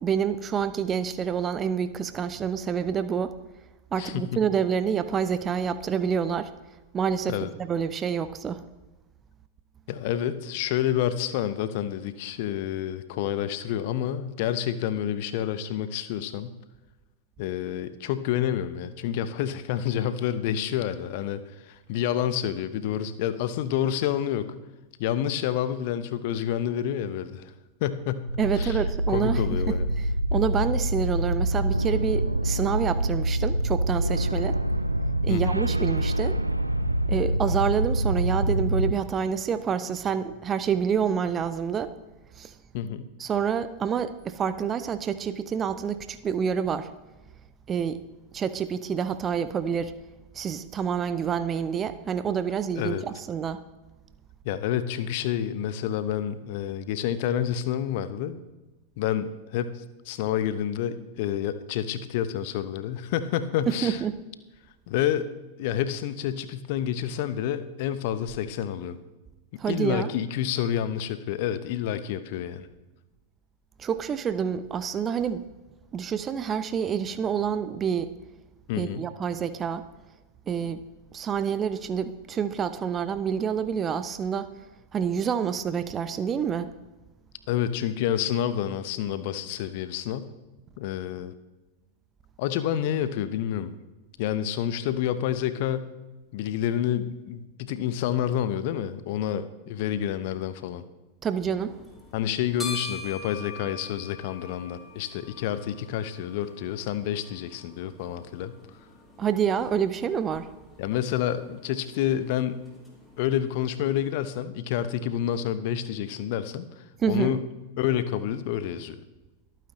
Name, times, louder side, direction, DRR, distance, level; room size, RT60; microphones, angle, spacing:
voice 1, 0.0-3.3 3.9-6.5 6.9-8.6 28.4-34.6 35.2-36.4 37.1-41.9 42.4-42.5 43.2-46.9 47.7-48.0 48.3-49.9 50.3-53.6 63.7-64.2 69.6-70.1 73.8-75.4 75.9-78.1 78.7-79.8 80.5-80.8 81.1-84.5 84.9-86.7 101.2-101.9 109.2-110.5 117.0-117.3, right 7 dB, 25° right, 13 dB, 0.6 m, -28 dB
voice 2, 4.0-4.4 7.3-7.5 9.9-16.5 17.4-24.5 25.0-27.5 27.8-28.8 29.1-29.9 35.3-35.6 42.7-43.0 52.8-53.0 54.4-58.4 59.0-64.0 64.9-65.3 65.6-69.0 69.7-72.7 78.7-79.0 87.5-90.3 90.8-91.3 92.4-93.8 94.2-95.9 96.3-100.8 102.1-108.5 110.8-112.6 113.2-117.4 117.8-119.0, left 10 dB, 50° left, 13 dB, 0.9 m, -29 dB
sound 1, 28.3-38.9, right 1 dB, 85° right, 0.5 m, -25 dB
sound 2, 101.6-114.1, left 2 dB, 5° left, 3.3 m, -45 dB
23.5 x 9.1 x 3.1 m, 1.1 s
figure-of-eight pair, 90°, 0 cm